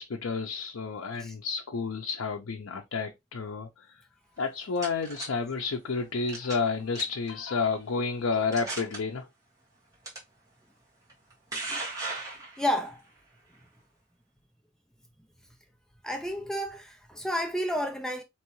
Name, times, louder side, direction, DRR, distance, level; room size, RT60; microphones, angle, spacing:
voice 1, 0.0-4.0 4.4-9.3, left 4 dB, 80° left, 0.6 m, -31 dB
sound 1, 4.4-5.3 6.3-6.7 6.9-7.3 7.9-8.0 8.5-9.0 10.0-10.2 11.1-12.9, right 3 dB, 15° right, 1.6 m, -36 dB
voice 2, 12.6-13.0 16.0-18.2, equal, 5° left, 0.4 m, -31 dB
4.5 x 3.0 x 3.0 m
head